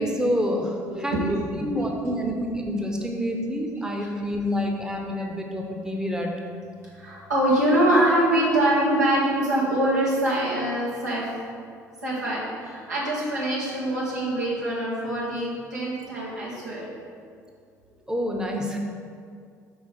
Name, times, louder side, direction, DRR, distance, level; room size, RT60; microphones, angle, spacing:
voice 1, 0.0-6.4 18.1-18.8, equal, 10° right, 1 dB, 0.8 m, -27 dB
voice 2, 6.9-11.3 12.0-16.9, right 1 dB, 85° right, -8 dB, 1.5 m, -24 dB
5.6 x 4.2 x 4.7 m, 2.2 s
figure-of-eight pair, 55°, 9 cm